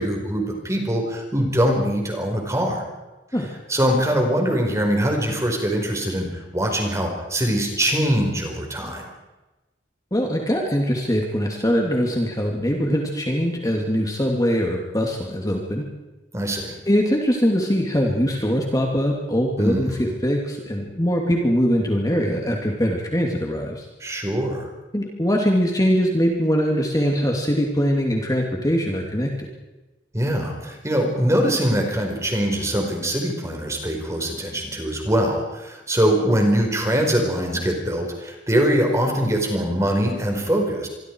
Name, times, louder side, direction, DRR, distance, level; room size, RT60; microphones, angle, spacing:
voice 1, 0.0-2.8 3.7-9.1 16.3-16.7 19.6-20.1 24.0-24.7 30.1-40.9, equal, 15° right, 2 dB, 4.9 m, -22 dB
voice 2, 10.1-15.8 16.9-23.8 24.9-29.5, equal, 20° left, 0 dB, 2.8 m, -22 dB
26.5 x 23.0 x 4.8 m, 1.1 s
head